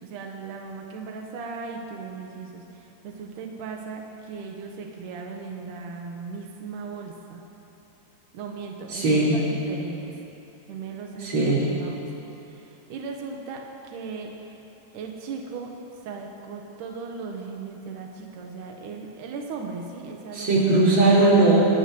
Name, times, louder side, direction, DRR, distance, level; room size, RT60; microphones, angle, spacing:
voice 1, 0.0-7.4 8.3-10.1 10.7-12.0 12.5-13.6 13.9-14.5 14.9-15.7 16.1-20.6, right 5 dB, 80° right, 1 dB, 1.9 m, -37 dB
voice 2, 8.9-9.4 11.2-11.7 20.3-21.6, right 2 dB, 40° right, -8 dB, 5.5 m, -19 dB
24.5 x 18.5 x 3.1 m, 2.9 s
omnidirectional pair, 5.3 m